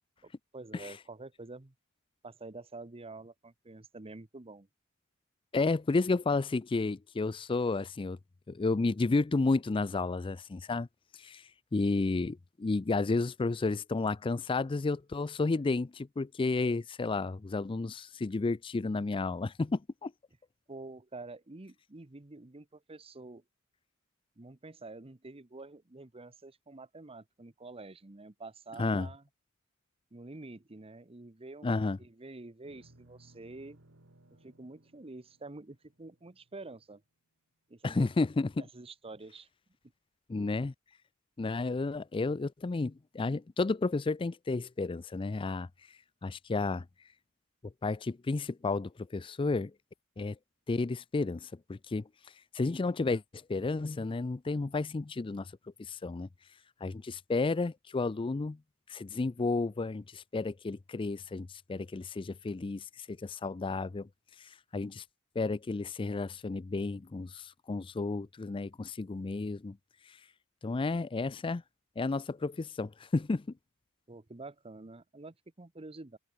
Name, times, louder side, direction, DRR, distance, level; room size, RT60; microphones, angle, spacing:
voice 1, 0.2-1.7 2.2-4.7 20.7-23.4 24.4-29.2 30.1-31.7 32.0-33.8 34.4-37.0 37.7-38.1 38.6-39.5 74.1-76.2, right 2 dB, 25° right, 1.0 m, -48 dB
voice 2, 5.5-8.2 8.5-10.9 11.1-20.1 28.8-29.1 31.6-32.0 37.8-38.5 40.3-40.7 41.4-46.8 47.8-49.7 50.2-50.4 50.7-52.0 52.5-53.2 53.5-55.5 55.8-56.3 56.8-58.6 58.9-64.1 64.4-65.0 65.4-69.8 70.0-70.2 70.6-71.6 72.0-73.4, left 3 dB, 25° left, 0.4 m, -32 dB
sound 1, 32.6-37.1, right 1 dB, 65° right, 2.6 m, -62 dB
head